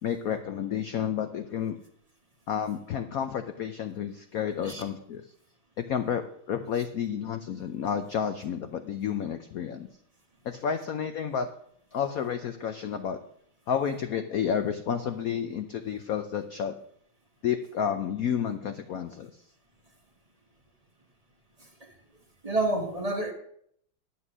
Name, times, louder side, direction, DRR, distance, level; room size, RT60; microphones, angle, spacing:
voice 1, 0.0-1.8 2.5-5.2 5.8-6.2 6.5-9.9 10.4-11.5 11.9-13.2 13.7-16.7 17.4-19.3, left 8 dB, 85° left, 8 dB, 0.7 m, -30 dB
voice 2, 22.4-23.3, right 2 dB, 25° right, 3 dB, 0.9 m, -29 dB
10.5 x 7.0 x 6.0 m, 0.67 s
omnidirectional pair, 2.3 m